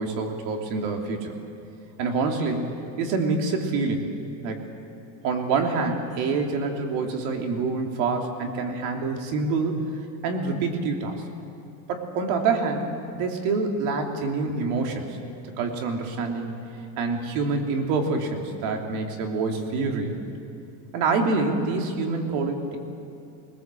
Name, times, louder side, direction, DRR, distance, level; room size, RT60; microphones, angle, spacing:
voice 1, 0.0-1.4 2.0-4.0 4.4-4.6 5.2-9.8 10.2-11.2 11.9-12.9 13.1-15.2 15.6-16.5 17.0-20.2 20.9-22.8, right 4 dB, 85° right, 2 dB, 3.1 m, -26 dB
23.0 x 20.5 x 7.7 m, 2.7 s
cardioid pair, 180°, 42 cm